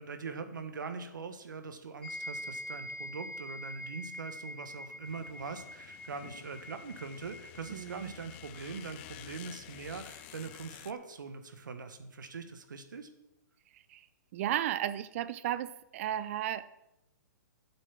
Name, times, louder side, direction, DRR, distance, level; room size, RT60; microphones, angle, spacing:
voice 1, 0.0-13.1, right 4 dB, 80° right, 9 dB, 1.5 m, -42 dB
sound 1, 2.0-10.7, equal, 10° left, 2.1 m, -46 dB
sound 2, 5.0-10.9, left 16 dB, 35° left, 0.4 m, -51 dB
voice 2, 7.7-8.1 13.7-14.1 14.3-16.7, right 12 dB, 45° right, 15 dB, 0.6 m, -34 dB
8.3 x 7.7 x 7.4 m, 0.91 s
hypercardioid pair, 140°, 10 cm